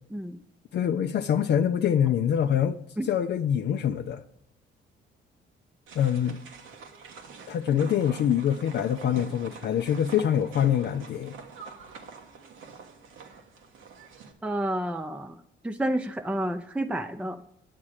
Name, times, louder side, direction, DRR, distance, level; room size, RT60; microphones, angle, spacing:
voice 1, 0.7-4.2 5.9-6.4 7.5-11.3, left 9 dB, 60° left, 0.5 m, -25 dB
sound 1, 5.9-14.3, right 5 dB, 85° right, 1.4 m, -46 dB
voice 2, 14.4-15.4 15.6-17.4, right 1 dB, 5° right, 0.6 m, -30 dB
9.6 x 7.3 x 4.9 m
cardioid pair, 90°, 20 cm